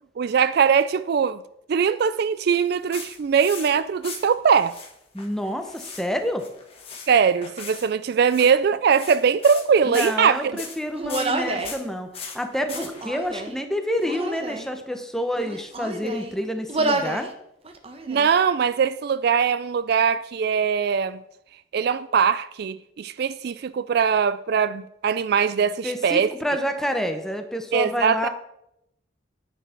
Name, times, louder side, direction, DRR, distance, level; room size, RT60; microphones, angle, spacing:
voice 1, 0.2-1.4 1.7-4.7 7.1-10.6 18.1-21.2 21.7-26.3 27.7-28.3, right 6 dB, 55° right, 0.3 m, -21 dB
sound 1, 2.5-3.7 4.0-4.9 5.2-6.0 6.3-7.1 7.4-7.9 8.2-8.5 8.9-9.7 9.9-10.8 11.1-11.3 11.6-11.8 12.1-13.1, left 5 dB, 30° left, 1.9 m, -38 dB
voice 2, 5.1-6.4 9.8-12.1 12.3-17.3 25.8-28.3, equal, ahead, 1.1 m, -28 dB
Human voice, 10.9-11.8 12.7-13.6 14.0-14.7 15.4-16.3 16.7-17.3 17.6-18.3, right 2 dB, 30° right, 1.1 m, -28 dB
10.0 x 9.4 x 4.5 m
head